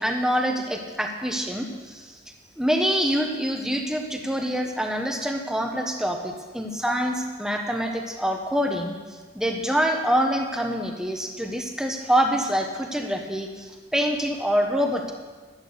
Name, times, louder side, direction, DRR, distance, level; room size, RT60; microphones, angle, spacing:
voice 1, 0.0-2.1 2.6-9.0 9.3-15.1, equal, 5° right, 2 dB, 1.2 m, -25 dB
11.5 x 11.5 x 6.7 m, 1.4 s
head